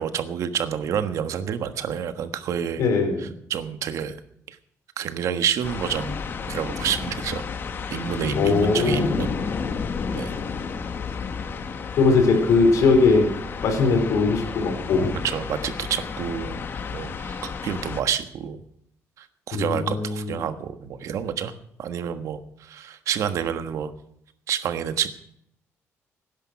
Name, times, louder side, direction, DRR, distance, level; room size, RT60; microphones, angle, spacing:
voice 1, 0.0-2.8 3.2-4.1 4.5-4.6 5.0-6.2 6.5-7.4 7.9-9.4 10.1-10.3 15.2-16.6 16.9-18.6 19.2-21.5 21.8-23.9 24.5-25.1, right 8 dB, 75° right, 9 dB, 1.4 m, -28 dB
voice 2, 2.8-3.2 8.3-9.2 12.0-13.3 13.6-15.2 19.5-20.4, left 4 dB, 80° left, 5 dB, 4.3 m, -20 dB
sound 1, 5.6-18.0, left 5 dB, 45° left, 1.4 m, -32 dB
18.5 x 10.5 x 5.9 m, 0.72 s
cardioid pair, 140°, 5 cm